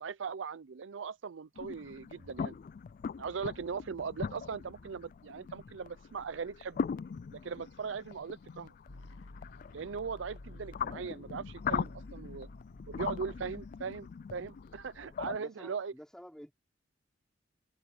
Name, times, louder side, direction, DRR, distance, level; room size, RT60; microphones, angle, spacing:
voice 1, 0.0-2.6 3.2-6.9 7.3-8.7 9.7-12.5 12.9-15.9, right 5 dB, 75° right, 0.5 m, -39 dB
sound 1, 1.6-15.4, left 6 dB, 45° left, 0.3 m, -41 dB
sound 2, 1.7-15.0, left 1 dB, 65° left, 6.8 m, -66 dB
sound 3, 8.9-14.9, left 2 dB, 90° left, 1.0 m, -51 dB
voice 2, 15.0-16.5, equal, 5° left, 3.6 m, -51 dB
head